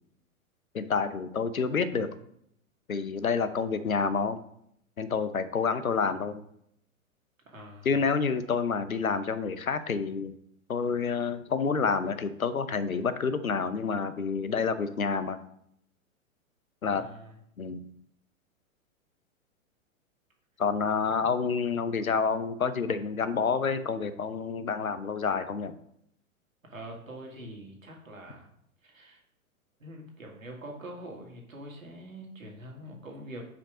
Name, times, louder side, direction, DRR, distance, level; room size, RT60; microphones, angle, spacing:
voice 1, 0.7-2.1 2.9-4.4 5.0-6.4 7.8-10.3 10.7-15.4 16.8-17.0 17.6-17.9 20.6-25.7, left 5 dB, 85° left, 13 dB, 0.7 m, -28 dB
voice 2, 7.5-7.9 16.9-17.3 26.6-28.5 28.8-29.2 29.8-33.5, right 1 dB, 75° right, 1 dB, 1.9 m, -44 dB
5.2 x 5.2 x 5.0 m, 0.72 s
figure-of-eight pair, 105°, 41 cm